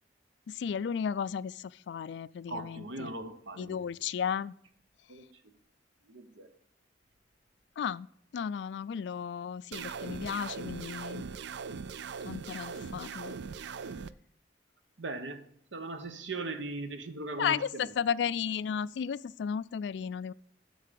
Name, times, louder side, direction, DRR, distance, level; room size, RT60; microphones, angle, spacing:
voice 1, 0.5-3.1 3.6-4.5 7.8-8.1 8.3-11.2 12.3-13.3 17.4-20.3, left 7 dB, 65° left, 0.3 m, -34 dB
voice 2, 2.5-3.8 5.1-5.3 6.1-6.5 15.0-15.4 15.7-17.9, right 2 dB, 80° right, 1.1 m, -39 dB
sound 1, 9.7-14.1, right 5 dB, 65° right, 0.4 m, -40 dB
7.8 x 6.7 x 6.9 m
head